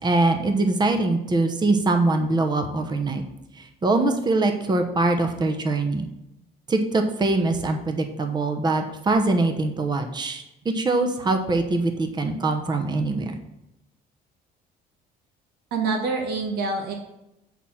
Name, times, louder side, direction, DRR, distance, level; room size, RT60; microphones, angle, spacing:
voice 1, 0.0-3.2 3.5-6.1 6.7-13.4, right 2 dB, 25° right, 5 dB, 1.0 m, -23 dB
voice 2, 15.7-16.9, right 3 dB, 75° right, 2 dB, 1.4 m, -26 dB
8.3 x 4.3 x 7.2 m, 0.89 s
cardioid pair, 110°, 17 cm